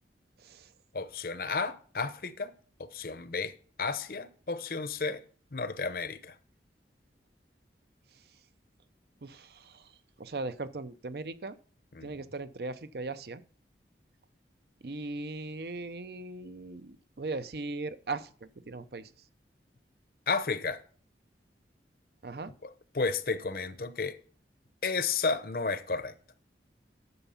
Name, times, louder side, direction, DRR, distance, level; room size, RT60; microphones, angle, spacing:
voice 1, 0.4-0.7 8.1-8.2 9.2-11.6 12.0-13.4 14.8-19.1 22.2-22.5, right 3 dB, 65° right, 0.7 m, -39 dB
voice 2, 0.9-2.5 2.8-5.2 5.5-6.3 11.9-12.1 20.3-20.8 22.6-22.7 22.9-24.2 24.8-26.2, left 4 dB, 55° left, 0.8 m, -32 dB
11.0 x 7.0 x 5.7 m
head